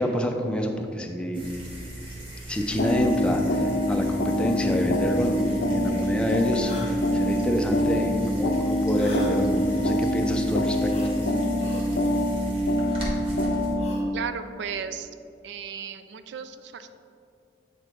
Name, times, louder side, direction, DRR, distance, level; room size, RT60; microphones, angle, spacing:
voice 1, 0.0-1.5 2.5-10.9, equal, 5° left, 2 dB, 0.4 m, -27 dB
sound 1, 1.3-13.7, right 1 dB, 30° right, 1.2 m, -37 dB
sound 2, 2.8-14.1, left 1 dB, 65° left, 0.5 m, -25 dB
sound 3, 6.6-6.9 8.9-9.3 10.9-11.1 11.6-11.9 13.7-14.1, right 1 dB, 35° left, 0.9 m, -35 dB
voice 2, 14.1-15.1 15.4-16.9, right 6 dB, 65° right, 9 dB, 0.3 m, -35 dB
8.1 x 2.9 x 4.4 m, 2.5 s
head